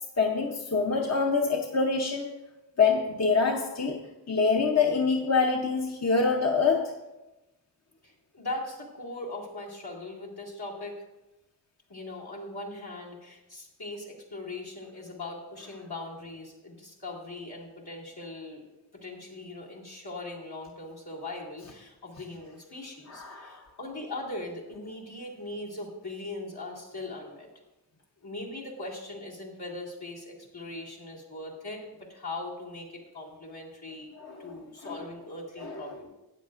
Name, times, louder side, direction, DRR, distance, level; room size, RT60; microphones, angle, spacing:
voice 1, 0.2-2.3 2.8-7.0 23.1-23.7 34.2-34.5 34.8-35.0 35.6-36.0, left 4 dB, 40° left, 1 dB, 0.8 m, -26 dB
voice 2, 8.0-11.0 11.9-18.6 19.0-27.5 28.2-34.1 34.4-36.1, left 2 dB, 70° left, -5 dB, 2.4 m, -40 dB
13.0 x 8.8 x 2.5 m, 1.0 s
wide cardioid pair, 55°, 39 cm